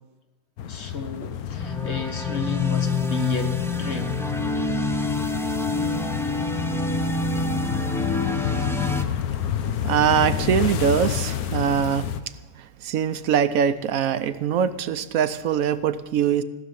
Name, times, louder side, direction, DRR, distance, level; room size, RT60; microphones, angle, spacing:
sound 1, 0.6-12.2, left 9 dB, 85° left, 1.3 m, -30 dB
voice 1, 0.7-4.2 5.8-5.9, left 3 dB, 50° left, 6 dB, 1.4 m, -32 dB
sound 2, 1.5-9.0, left 2 dB, 5° left, 0.5 m, -27 dB
voice 2, 9.8-12.1 12.8-16.4, right 8 dB, 70° right, 12 dB, 1.1 m, -22 dB
16.0 x 6.9 x 9.4 m, 1.1 s
omnidirectional pair, 1.5 m